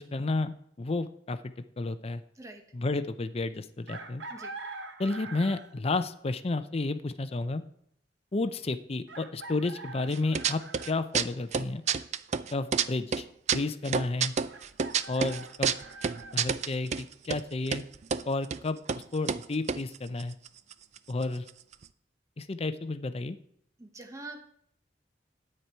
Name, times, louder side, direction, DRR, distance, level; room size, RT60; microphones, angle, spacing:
voice 1, 0.0-2.2 2.7-4.2 5.0-7.6 8.3-11.8 12.5-13.3 13.5-14.3 15.1-15.7 16.3-17.8 18.2-18.8 19.1-20.3 21.1-21.4 22.4-23.4, left 2 dB, 35° left, 12 dB, 0.5 m, -31 dB
Chicken rooster, 3.9-5.8 7.5-7.6 9.1-11.0 14.5-16.4, right 3 dB, 70° right, 0.9 m, -44 dB
sound 1, 10.1-10.9 11.1-12.9 13.1-17.0 17.3-17.4 17.7-18.2 18.5-18.6 18.9-19.0 19.3-21.0 21.2-21.3 21.5-21.8, right 6 dB, 40° right, 0.4 m, -29 dB
voice 2, 23.8-24.5, right 2 dB, 15° right, 4 dB, 1.0 m, -44 dB
9.7 x 8.8 x 4.5 m, 0.69 s
head